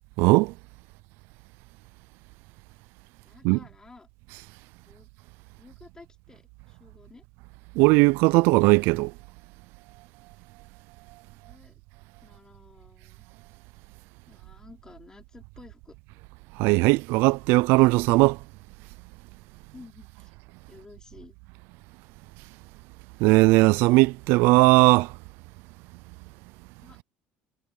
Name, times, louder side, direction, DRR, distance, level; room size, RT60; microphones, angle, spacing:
voice 1, 0.2-0.5 3.4-3.6 7.8-9.1 16.6-18.4 23.2-25.1, right 23 dB, 75° right, 0.4 m, -18 dB
voice 2, 3.2-4.1 4.8-5.1 5.6-7.2 11.3-11.8 12.2-13.3 14.3-16.0 19.7-20.3 20.7-21.4 26.8-27.0, left 3 dB, 15° left, 4.9 m, -52 dB
cardioid pair, 115°, 4 cm